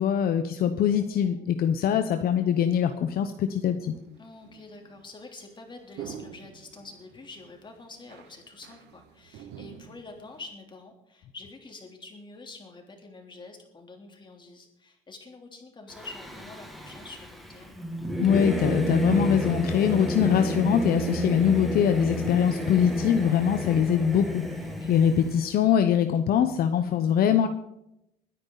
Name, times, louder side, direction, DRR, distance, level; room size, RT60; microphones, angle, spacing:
voice 1, 0.0-3.9 18.2-24.5 24.9-27.5, left 8 dB, 65° left, 8 dB, 0.9 m, -23 dB
sound 1, 2.7-2.8 3.4-10.5, right 8 dB, 85° right, 1.3 m, -47 dB
voice 2, 4.2-17.9 24.6-25.0 26.7-27.2, left 3 dB, 25° left, 3 dB, 3.3 m, -47 dB
Singing / Musical instrument, 15.9-25.5, equal, ahead, 2.2 m, -30 dB
21.5 x 9.7 x 4.0 m, 0.82 s
cardioid pair, 110°, 17 cm